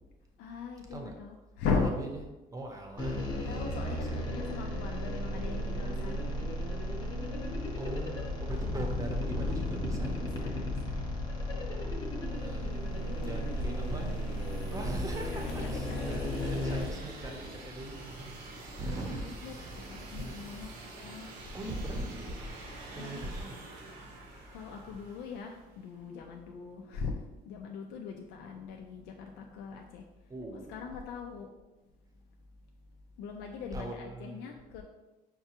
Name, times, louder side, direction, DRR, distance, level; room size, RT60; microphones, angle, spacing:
voice 1, 0.4-2.0 3.5-6.5 10.2-10.9 13.0-14.1 15.2-16.3 19.4-19.5 19.9-20.7 21.0-21.5 22.9-23.3 24.5-30.1 30.7-31.5 33.2-34.8, left 5 dB, 90° left, 1 dB, 0.4 m, -39 dB
voice 2, 0.9-1.2 1.7-2.1 2.5-3.2 3.9-4.4 7.8-10.3 12.4-12.8 13.2-14.2 14.7-19.8 20.1-20.4 21.5-22.4 22.9-23.6 30.3-31.0 33.7-34.6, right 1 dB, 20° right, 2 dB, 0.7 m, -40 dB
sound 1, 3.0-16.9, left 1 dB, 25° left, 0.8 m, -34 dB
sound 2, 12.3-26.0, right 2 dB, 80° right, 0.8 m, -48 dB
5.6 x 2.3 x 2.8 m, 1.1 s
cardioid pair, 110°, 17 cm